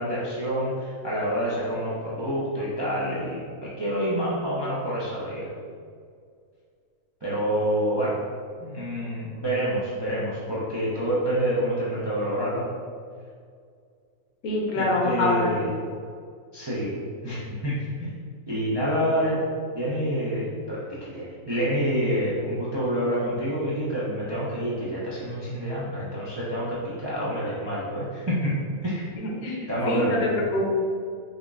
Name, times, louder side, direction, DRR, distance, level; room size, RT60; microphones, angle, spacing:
voice 1, 0.0-5.5 7.2-8.2 8.6-12.6 14.7-15.7 16.5-16.9 17.2-18.1 18.5-19.4 19.7-28.5 28.8-29.1 29.7-30.2, equal, 35° right, -9 dB, 0.4 m, -27 dB
voice 2, 14.4-15.5 29.2-30.7, left 1 dB, 85° left, -3 dB, 1.3 m, -25 dB
5.4 x 2.5 x 2.3 m, 2.2 s
omnidirectional pair, 1.5 m